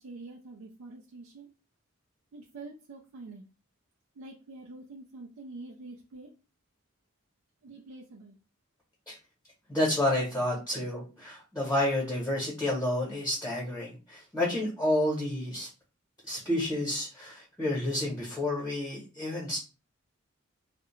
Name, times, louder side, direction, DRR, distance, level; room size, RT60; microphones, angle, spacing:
voice 1, 0.0-1.5 2.3-3.5 4.2-6.3 7.6-8.4, right 3 dB, 85° right, 0 dB, 0.4 m, -46 dB
voice 2, 9.7-15.7 16.2-19.6, left 1 dB, 10° left, -7 dB, 0.8 m, -30 dB
2.3 x 2.1 x 3.0 m, 0.32 s
head